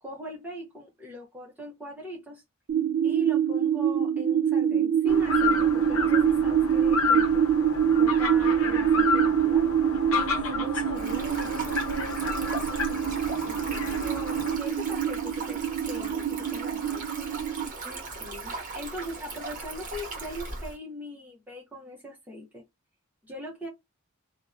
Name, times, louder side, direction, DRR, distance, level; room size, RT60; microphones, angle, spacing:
voice 1, 0.0-2.4 3.0-7.5 7.9-9.7 14.0-17.1 18.7-22.6 23.3-23.7, equal, 10° right, 0.5 m, -40 dB
sound 1, 2.7-17.7, right 8 dB, 65° right, 0.3 m, -25 dB
sound 2, 5.1-14.6, left 5 dB, 65° left, 0.7 m, -31 dB
voice 2, 10.1-14.1 17.8-18.5, right 1 dB, 20° left, 0.9 m, -42 dB
Stream, 10.9-20.7, right 3 dB, 35° right, 0.8 m, -38 dB
2.6 x 2.0 x 2.3 m
head